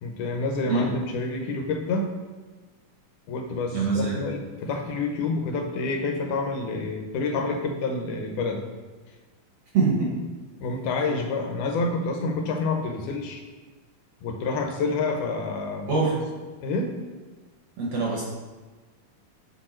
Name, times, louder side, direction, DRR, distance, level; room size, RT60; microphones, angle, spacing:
voice 1, 0.0-2.1 3.3-8.6 10.6-13.4 14.2-16.2 16.6-16.9, left 3 dB, 80° left, 3 dB, 2.2 m, -28 dB
voice 2, 3.7-4.2 9.7-10.1 15.9-16.1 17.8-18.2, right 4 dB, 60° right, -3 dB, 1.7 m, -24 dB
6.7 x 4.6 x 4.3 m, 1.3 s
omnidirectional pair, 3.6 m